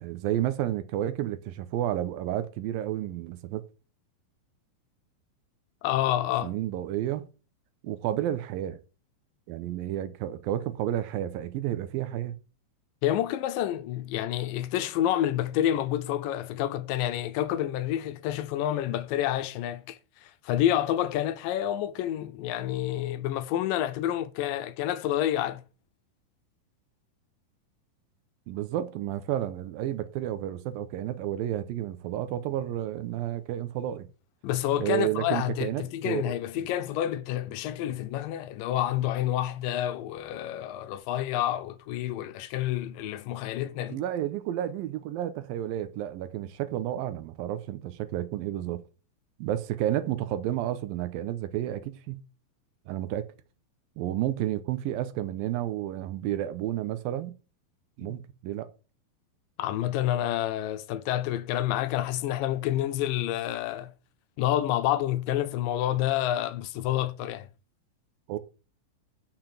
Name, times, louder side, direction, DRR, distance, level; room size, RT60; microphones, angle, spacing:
voice 1, 0.0-3.7 6.4-7.3 7.8-8.8 9.5-12.3 28.5-34.1 34.8-36.2 43.9-48.8 49.4-52.2 52.9-53.3 54.0-57.4 58.0-58.7 68.3-68.4, right 12 dB, 85° right, 2.6 m, -31 dB
voice 2, 5.8-6.5 13.0-25.6 34.4-44.0 58.0-58.2 59.6-63.9 64.4-67.5, left 12 dB, 80° left, 2.2 m, -28 dB
6.8 x 5.9 x 7.5 m
omnidirectional pair, 4.1 m